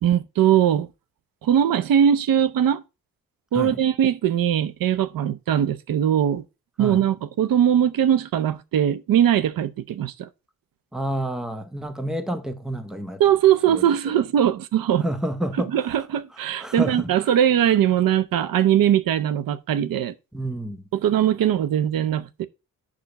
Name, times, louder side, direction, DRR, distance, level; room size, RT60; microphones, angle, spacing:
voice 1, 0.0-0.9 1.4-2.8 3.5-6.4 6.8-10.3 13.2-15.1 15.7-20.1 20.9-22.5, right 10 dB, 75° right, 0.7 m, -20 dB
voice 2, 10.9-13.2 13.7-13.8 15.0-15.9 16.6-17.1 20.3-20.8, right 1 dB, ahead, 0.7 m, -29 dB
5.8 x 4.9 x 6.3 m
wide cardioid pair, 170°, 34 cm